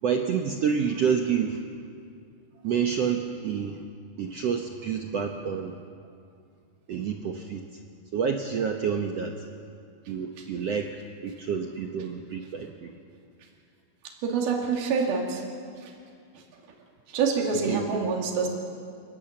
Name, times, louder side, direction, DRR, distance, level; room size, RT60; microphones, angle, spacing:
voice 1, 0.0-1.6 2.6-3.8 4.2-5.8 6.9-7.8 8.1-9.3 10.1-11.0 11.2-12.9 17.7-17.9, right 7 dB, 85° right, 3 dB, 1.4 m, -28 dB
voice 2, 14.0-15.4 15.8-15.9 16.3-16.4 17.1-18.5, right 5 dB, 70° right, 1 dB, 4.3 m, -27 dB
29.5 x 19.5 x 7.7 m, 2.3 s
omnidirectional pair, 4.6 m